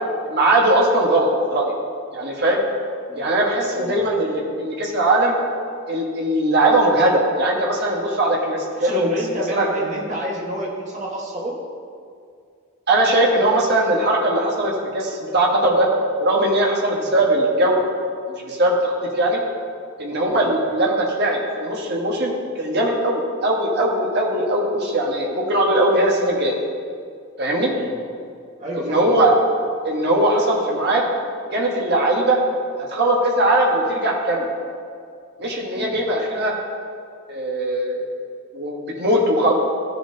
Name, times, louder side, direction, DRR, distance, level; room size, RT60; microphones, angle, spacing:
voice 1, 0.2-1.7 2.1-2.6 3.2-5.3 5.9-9.2 9.5-9.6 12.9-15.9 16.2-17.8 18.3-19.4 20.0-22.3 22.6-26.5 27.4-27.7 28.8-29.3 29.8-31.1 31.5-32.4 32.8-34.5 35.4-36.5 37.3-38.0 38.5-39.5, right 1 dB, 50° right, -2 dB, 1.4 m, -20 dB
voice 2, 8.7-11.6 20.4-20.6 27.7-27.9 28.6-29.2 35.7-36.0, right 1 dB, 35° right, -3 dB, 1.6 m, -30 dB
14.5 x 7.0 x 2.8 m, 2.2 s
head